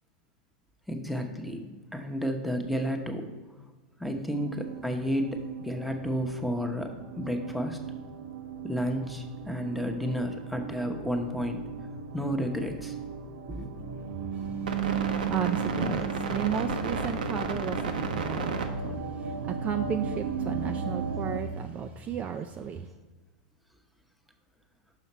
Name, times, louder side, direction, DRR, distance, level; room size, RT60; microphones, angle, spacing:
voice 1, 0.9-1.6 1.9-3.3 4.0-7.8 8.6-11.6 12.1-12.9 13.5-13.7 14.4-14.5, equal, ahead, 0.8 m, -31 dB
sound 1, 4.3-21.4, right 5 dB, 85° right, 0.7 m, -34 dB
voice 2, 15.3-19.0 19.2-22.9, right 9 dB, 30° right, 0.3 m, -34 dB
5.7 x 5.7 x 4.2 m
hypercardioid pair, 110°, 4 cm